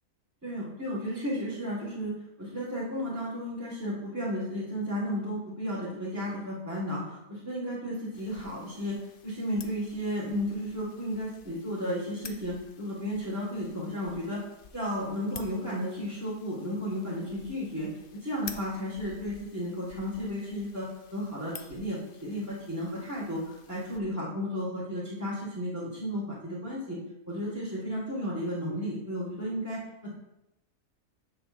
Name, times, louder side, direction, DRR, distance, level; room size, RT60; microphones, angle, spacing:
voice 1, 0.4-2.1 2.4-9.0 9.2-14.4 14.7-27.0 27.3-30.1, equal, 10° right, -8 dB, 1.5 m, -33 dB
sound 1, 8.1-24.0, left 6 dB, 60° left, 0.5 m, -51 dB
9.8 x 6.7 x 2.5 m, 0.90 s
omnidirectional pair, 1.6 m